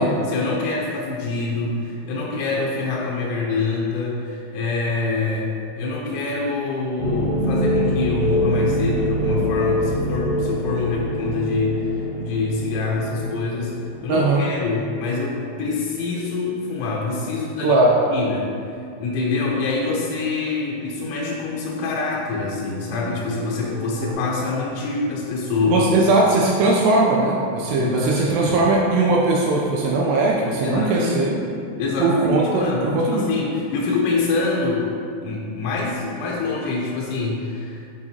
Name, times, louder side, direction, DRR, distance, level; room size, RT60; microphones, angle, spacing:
voice 1, 0.0-13.7 14.0-17.8 18.1-18.5 19.0-25.9 27.8-28.6 30.6-31.2 31.8-34.9 35.2-37.9, left 3 dB, 85° left, -4 dB, 3.1 m, -25 dB
sound 1, 7.0-16.5 16.8-16.9 17.1-17.2 23.5-24.1, equal, 70° right, 1.4 m, -25 dB
voice 2, 14.1-14.4 17.6-18.0 25.7-31.4 32.0-33.3, right 2 dB, 85° right, -2 dB, 2.4 m, -19 dB
9.1 x 4.8 x 2.8 m, 2.4 s
omnidirectional pair, 5.4 m